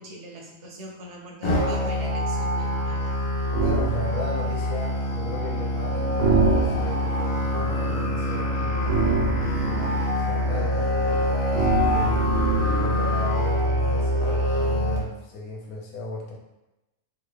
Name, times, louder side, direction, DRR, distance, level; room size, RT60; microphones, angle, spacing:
voice 1, 0.0-3.2, right 1 dB, 65° right, 0 dB, 0.8 m, -41 dB
Musical instrument, 1.4-15.0, left 1 dB, 40° left, 0.4 m, -25 dB
sound 1, 3.5-4.0 6.2-7.1 8.9-10.0 11.5-12.9, right 4 dB, 90° right, 1.1 m, -24 dB
voice 2, 3.6-16.3, left 1 dB, 85° left, -2 dB, 1.2 m, -36 dB
sound 2, 5.9-12.0, equal, 20° right, 0.5 m, -44 dB
3.3 x 2.3 x 3.2 m, 0.98 s
omnidirectional pair, 1.5 m